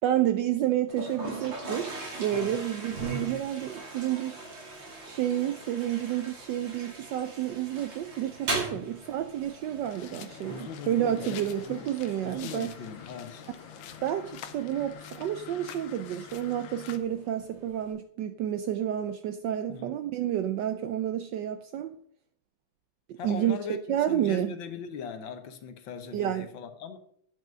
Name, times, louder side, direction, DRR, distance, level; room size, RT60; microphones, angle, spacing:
voice 1, 0.0-1.9 2.2-4.4 5.0-12.7 14.0-21.9 23.2-23.6 23.9-24.5 26.1-26.5, right 11 dB, 75° right, 1.0 m, -30 dB
Toilet flush, 0.9-17.9, right 2 dB, 60° right, 3.1 m, -41 dB
sound 1, 9.8-17.0, left 9 dB, 85° left, 1.7 m, -46 dB
voice 2, 10.4-11.9 12.2-13.4 19.7-19.9 23.2-27.0, left 7 dB, 65° left, 1.6 m, -40 dB
9.3 x 5.6 x 6.2 m
omnidirectional pair, 2.4 m